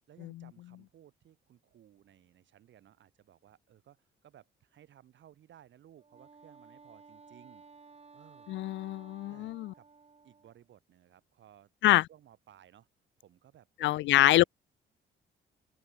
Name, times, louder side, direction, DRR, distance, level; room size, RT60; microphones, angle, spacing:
voice 1, 0.1-7.7 8.1-8.7 9.3-9.9 10.2-12.9 13.2-14.5, right 11 dB, 70° right, 4.5 m, -59 dB
Wind instrument woodwind instrument, 5.9-10.6, right 4 dB, 30° right, 3.9 m, -56 dB
voice 2, 8.5-9.7 11.8-12.0 13.8-14.4, left 16 dB, 70° left, 0.4 m, -25 dB
open air
cardioid pair, 90°, 20 cm